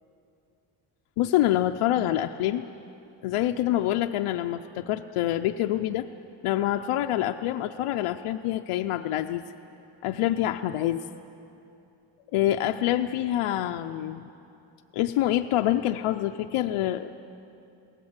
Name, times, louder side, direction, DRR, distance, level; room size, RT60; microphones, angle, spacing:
voice 1, 1.2-2.7 3.2-6.1 6.4-9.4 10.0-11.0 12.3-14.3 14.9-17.2, left 13 dB, 90° left, 5 dB, 0.7 m, -26 dB
22.0 x 17.5 x 8.1 m, 2.8 s
cardioid pair, 175°, 50 cm